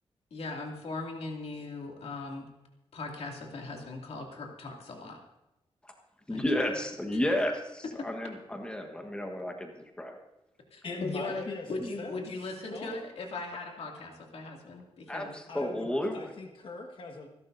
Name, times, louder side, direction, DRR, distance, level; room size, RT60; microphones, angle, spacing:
voice 1, 0.3-2.5 2.9-5.2 6.3-6.4 7.1-7.2 8.0-8.1 10.7-15.4, left 3 dB, 85° left, 0 dB, 2.5 m, -39 dB
voice 2, 6.3-9.7 10.0-10.1 11.8-11.9 15.1-16.3, left 1 dB, 10° left, 3 dB, 1.3 m, -32 dB
voice 3, 10.8-11.7 12.0-12.2 12.7-12.9 15.5-17.3, left 3 dB, 60° left, 2 dB, 1.5 m, -41 dB
26.5 x 11.5 x 2.7 m, 0.94 s
wide cardioid pair, 175°, 10 cm